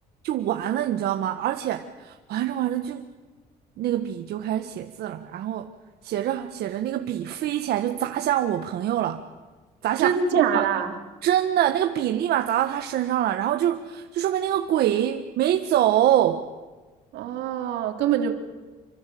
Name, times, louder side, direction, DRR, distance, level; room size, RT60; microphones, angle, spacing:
voice 1, 0.2-3.1 3.8-5.7 6.0-9.2 9.8-10.1 10.5-10.6 11.2-16.4, right 11 dB, 70° right, 5 dB, 1.5 m, -25 dB
voice 2, 10.0-10.9 17.1-18.3, right 8 dB, 85° right, 4 dB, 3.4 m, -24 dB
28.0 x 24.5 x 7.8 m, 1.3 s
cardioid pair, 110°, 17 cm